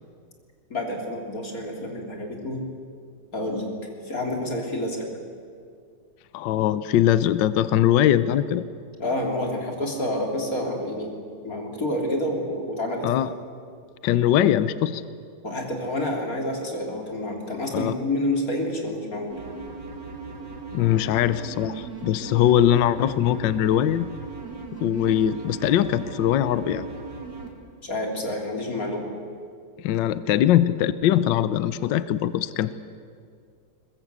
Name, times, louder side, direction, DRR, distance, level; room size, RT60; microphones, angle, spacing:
voice 1, 0.7-2.6 3.3-3.7 4.0-5.1 9.0-11.1 11.4-13.1 15.4-19.4 27.8-29.1, left 1 dB, 40° left, 1 dB, 3.6 m, -28 dB
voice 2, 6.3-8.6 13.0-13.3 14.0-15.0 17.7-17.9 20.7-24.1 24.8-26.9 29.8-32.7, left 11 dB, 70° left, 14 dB, 1.3 m, -21 dB
sound 1, 19.3-27.5, right 3 dB, 55° right, 3.3 m, -38 dB
21.5 x 21.0 x 8.1 m, 2.2 s
omnidirectional pair, 2.3 m